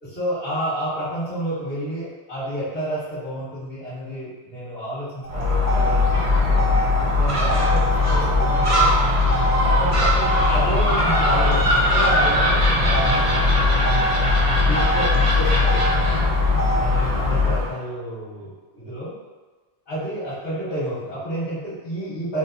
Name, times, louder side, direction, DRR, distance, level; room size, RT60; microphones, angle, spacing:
voice 1, 0.0-6.0 6.2-6.6 7.1-9.1 9.6-13.8 14.5-16.2 16.8-19.1 19.9-22.4, equal, 80° left, -10 dB, 1.5 m, -30 dB
Motor vehicle (road), 5.2-17.2, equal, 50° left, 0.4 m, -28 dB
Gull seagull, 5.3-17.7, left 2 dB, 45° right, 0.4 m, -19 dB
3.9 x 2.4 x 2.5 m, 1.3 s
omnidirectional pair, 1.2 m